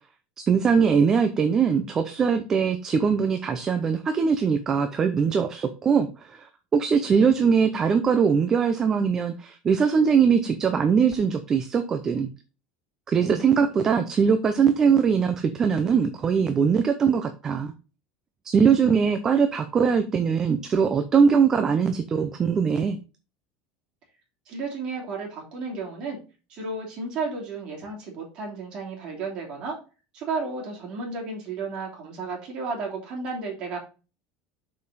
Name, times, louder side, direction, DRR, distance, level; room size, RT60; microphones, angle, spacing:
voice 1, 0.4-12.3 13.1-17.7 18.4-23.0, right 6 dB, 20° right, 7 dB, 0.5 m, -21 dB
voice 2, 24.5-26.2 26.5-29.8 30.1-33.8, right 4 dB, 35° right, -1 dB, 3.0 m, -33 dB
6.6 x 5.3 x 4.1 m, 0.33 s
cardioid pair, 180°, 3 cm